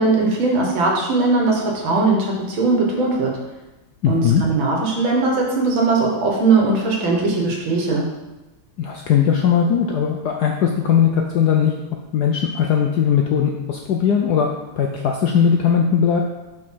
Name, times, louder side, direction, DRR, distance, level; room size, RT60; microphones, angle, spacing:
voice 1, 0.0-3.4 4.1-8.1, right 3 dB, 70° right, 0 dB, 2.0 m, -19 dB
voice 2, 4.0-4.4 8.8-11.7 12.1-14.5 14.8-16.2, left 7 dB, 75° left, 2 dB, 0.9 m, -18 dB
5.3 x 4.6 x 5.6 m, 1.1 s
omnidirectional pair, 2.3 m